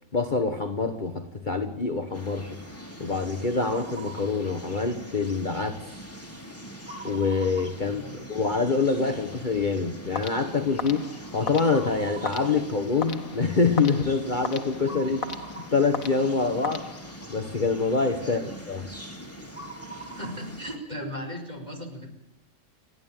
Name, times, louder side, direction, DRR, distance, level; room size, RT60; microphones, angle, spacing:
voice 1, 0.1-2.6 3.0-5.9 7.0-15.2 15.7-16.9 17.3-18.9, left 4 dB, 35° left, 1.4 m, -26 dB
sound 1, 2.1-20.8, right 1 dB, 10° left, 3.1 m, -41 dB
voice 2, 7.8-8.2 18.2-18.4 20.1-22.1, equal, 30° right, 5.4 m, -37 dB
sound 2, 10.1-17.4, left 6 dB, 70° left, 1.8 m, -38 dB
29.5 x 11.5 x 9.1 m
omnidirectional pair, 1.5 m